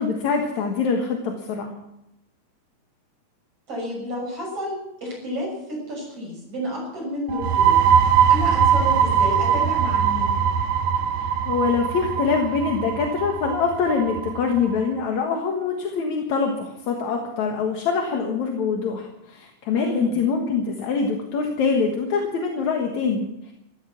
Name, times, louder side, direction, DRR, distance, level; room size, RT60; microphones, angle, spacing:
voice 1, 0.0-1.7 11.2-23.5, left 5 dB, 70° left, 2 dB, 2.9 m, -24 dB
voice 2, 3.7-7.8 8.3-10.4 19.7-20.2, left 1 dB, 50° right, -1 dB, 7.6 m, -31 dB
sound 1, 7.3-14.7, right 8 dB, 85° right, 2.5 m, -21 dB
14.5 x 14.0 x 7.2 m, 0.88 s
omnidirectional pair, 3.4 m